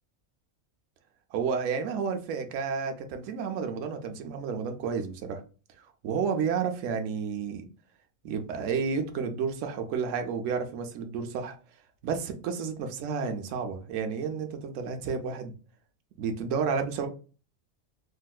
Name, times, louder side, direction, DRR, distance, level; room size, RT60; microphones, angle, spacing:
voice 1, 1.3-5.4 5.8-7.6 8.2-11.6 12.0-15.5 16.2-17.1, right 6 dB, 70° right, 5 dB, 0.9 m, -31 dB
3.6 x 2.4 x 2.2 m, 0.35 s
omnidirectional pair, 1.4 m